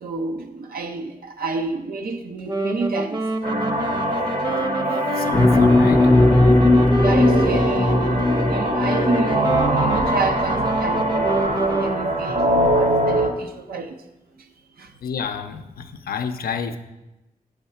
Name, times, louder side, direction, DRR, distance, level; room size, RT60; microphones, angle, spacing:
voice 1, 0.0-3.3 6.9-11.2 11.7-14.0 14.4-14.5 14.8-14.9, right 4 dB, 85° right, 0.6 m, -29 dB
Wind instrument woodwind instrument, 2.5-12.0, right 1 dB, 30° right, 0.7 m, -28 dB
sound 1, 3.4-13.3, right 1 dB, 60° right, 1.2 m, -23 dB
voice 2, 5.1-6.2 12.0-12.1 15.0-16.8, left 6 dB, 90° left, 0.5 m, -29 dB
sound 2, 5.3-9.8, left 2 dB, 15° left, 0.4 m, -17 dB
7.2 x 3.5 x 5.6 m
cardioid pair, 45°, 15 cm